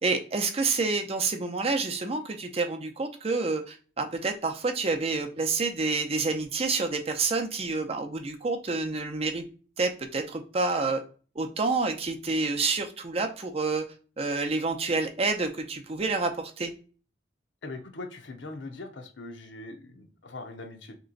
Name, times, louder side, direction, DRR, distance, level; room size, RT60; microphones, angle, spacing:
voice 1, 0.0-9.5 9.8-11.0 11.4-13.8 14.2-16.3 16.6-16.7, right 3 dB, 30° right, 5 dB, 0.5 m, -28 dB
voice 2, 17.6-21.0, left 2 dB, 80° left, 4 dB, 0.8 m, -41 dB
3.3 x 3.0 x 3.8 m, 0.38 s
head